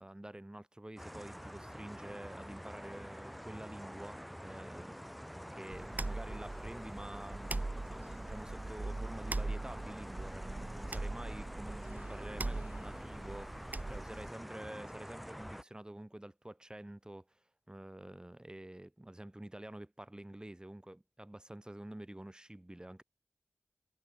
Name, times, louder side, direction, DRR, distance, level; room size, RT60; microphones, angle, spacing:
voice 1, 0.0-5.1 5.5-17.4 17.7-23.0, right 1 dB, 20° right, 5.2 m, -48 dB
sound 1, 1.0-15.6, equal, ahead, 1.4 m, -47 dB
sound 2, 5.7-14.3, right 2 dB, 40° right, 2.9 m, -41 dB
cardioid pair, 40°, 4 cm